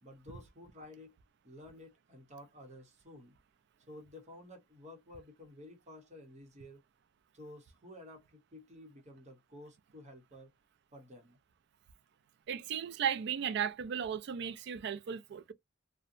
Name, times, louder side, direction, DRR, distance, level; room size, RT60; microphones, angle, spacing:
voice 1, 0.0-1.2 1.4-3.4 3.9-6.8 7.3-10.5 10.9-11.4, left 1 dB, 35° right, 0.9 m, -52 dB
voice 2, 12.5-15.5, right 8 dB, 60° right, 0.4 m, -35 dB
2.7 x 2.1 x 2.5 m
head